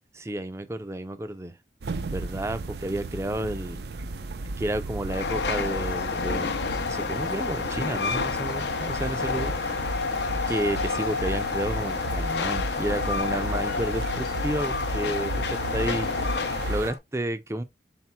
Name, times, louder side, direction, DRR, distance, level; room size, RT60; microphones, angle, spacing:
voice 1, 0.1-1.5 2.1-3.8 4.6-6.5 6.8-9.5 10.5-16.1 16.7-17.6, right 1 dB, 15° right, 0.5 m, -31 dB
sound 1, 1.8-16.9, right 2 dB, 70° right, 0.5 m, -34 dB
Train, 5.1-17.0, left 5 dB, 75° left, 0.7 m, -29 dB
4.4 x 3.9 x 2.2 m
head